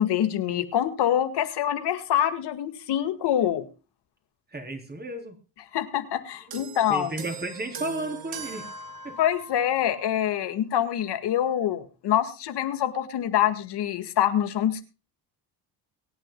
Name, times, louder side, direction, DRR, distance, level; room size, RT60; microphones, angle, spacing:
voice 1, 0.0-3.7 5.7-7.1 9.2-14.8, left 10 dB, 75° left, 9 dB, 2.0 m, -25 dB
voice 2, 4.5-5.4 6.9-8.7 9.0-9.2, right 2 dB, 25° right, 4 dB, 3.8 m, -33 dB
sound 1, 6.5-10.1 11.0-11.2, right 5 dB, 60° right, 2.4 m, -40 dB
24.0 x 9.1 x 2.2 m, 0.32 s
cardioid pair, 90°, 41 cm